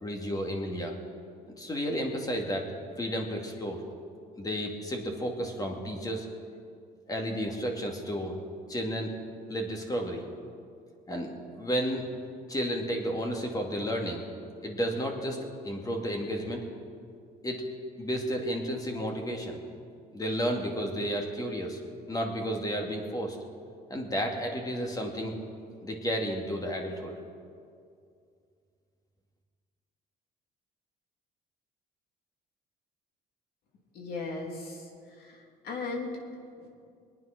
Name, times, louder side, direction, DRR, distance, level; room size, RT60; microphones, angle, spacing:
voice 1, 0.0-0.9 1.5-2.7 3.0-3.8 4.4-6.3 7.1-8.3 8.7-9.1 9.5-10.2 11.1-12.1 12.5-14.2 14.6-15.4 15.6-16.6 17.4-17.6 18.0-19.6 20.1-21.8 22.1-23.4 23.9-25.4 25.8-27.1, equal, 20° left, 2 dB, 2.4 m, -32 dB
voice 2, 33.9-34.9 35.2-36.2 36.6-36.7, left 3 dB, 65° left, 0 dB, 3.1 m, -37 dB
22.5 x 9.5 x 6.0 m, 2.3 s
cardioid pair, 110°, 17 cm